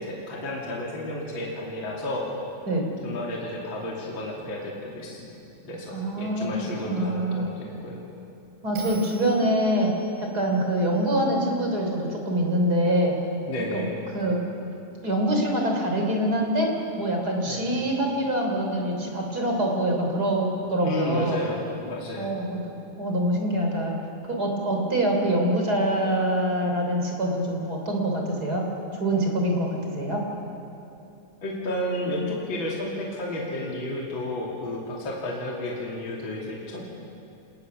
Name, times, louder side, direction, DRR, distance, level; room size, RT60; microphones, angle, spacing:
voice 1, 0.0-2.3 3.0-5.3 5.6-8.0 8.9-9.0 13.5-14.0 17.4-17.7 20.8-22.3 31.4-36.9, left 1 dB, 40° left, -3 dB, 3.2 m, -32 dB
voice 2, 5.9-7.5 8.6-13.2 13.7-13.8 14.1-14.5 15.0-21.4 22.2-22.6 23.0-24.0 24.2-28.7 28.9-30.3, right 1 dB, 30° right, 1 dB, 3.7 m, -25 dB
Bell, 8.8-12.0, right 3 dB, 85° right, 5.1 m, -46 dB
26.0 x 19.5 x 7.0 m, 2.8 s
omnidirectional pair, 3.5 m